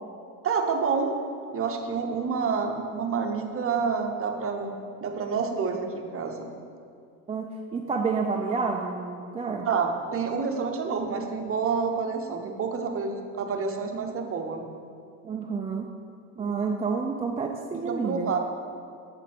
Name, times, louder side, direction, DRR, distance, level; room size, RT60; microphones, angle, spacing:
voice 1, 0.4-1.2 1.5-4.7 5.0-6.5 9.6-14.6 16.4-16.5 17.8-18.4, right 5 dB, 35° right, 3 dB, 1.0 m, -28 dB
voice 2, 7.3-9.7 15.2-15.9 16.4-18.3, right 4 dB, 15° right, 1 dB, 0.4 m, -29 dB
8.1 x 7.7 x 3.5 m, 2.3 s
supercardioid pair, 105°, 39 cm